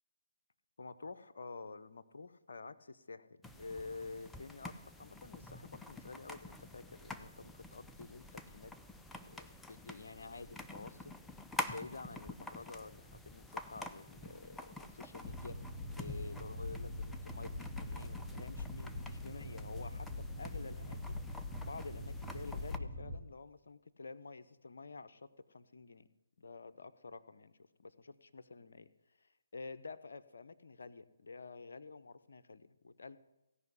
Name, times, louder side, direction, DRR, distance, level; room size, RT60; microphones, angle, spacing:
voice 1, 0.8-8.7 9.2-11.0 11.6-15.6 16.0-21.2 21.6-26.1 26.4-27.5 27.8-28.9 29.2-33.2, left 3 dB, 65° left, 10 dB, 0.8 m, -49 dB
sound 1, 3.4-22.8, left 1 dB, 5° left, 0.6 m, -48 dB
Boat Water vehicle, 15.2-23.2, left 1 dB, 30° left, 2.1 m, -43 dB
16.5 x 5.6 x 9.6 m, 0.95 s
figure-of-eight pair, 140°, 0 cm